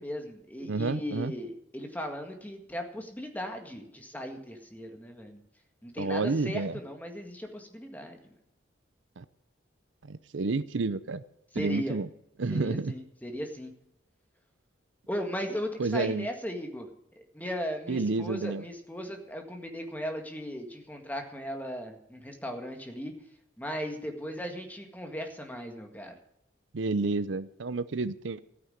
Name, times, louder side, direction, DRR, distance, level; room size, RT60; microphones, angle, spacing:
voice 1, 0.0-5.4 5.8-8.3 11.5-12.0 12.5-13.7 15.1-16.9 17.3-23.1 23.6-26.1, equal, 10° left, 4 dB, 1.9 m, -37 dB
voice 2, 0.6-1.3 6.0-6.7 9.2-9.3 10.1-11.2 11.5-12.1 12.4-12.9 15.8-16.3 17.9-18.6 26.7-28.4, right 3 dB, 80° right, 15 dB, 0.6 m, -30 dB
14.0 x 9.6 x 6.5 m, 0.77 s
head